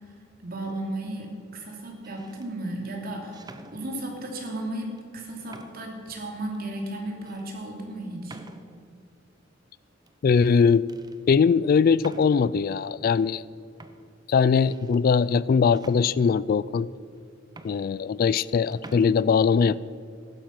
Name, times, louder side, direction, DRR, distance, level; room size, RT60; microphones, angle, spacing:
voice 1, 0.4-8.4, right 1 dB, 50° right, 1 dB, 2.9 m, -34 dB
sound 1, 0.6-1.1 1.9-2.5 3.3-4.3 5.0-5.1 5.5-6.0 6.5-6.6 7.3-7.4 8.3-8.9 10.1-10.6 10.9-11.2 12.0-12.6 13.4-13.5 13.8-15.0 15.7-16.6 17.2-17.3 17.5-18.5 18.7-19.1, right 2 dB, 20° right, 0.8 m, -48 dB
voice 2, 10.2-10.9 11.3-13.4 14.3-16.9 17.6-19.8, left 6 dB, 50° left, 19 dB, 0.3 m, -21 dB
15.5 x 12.0 x 6.0 m, 2.3 s
head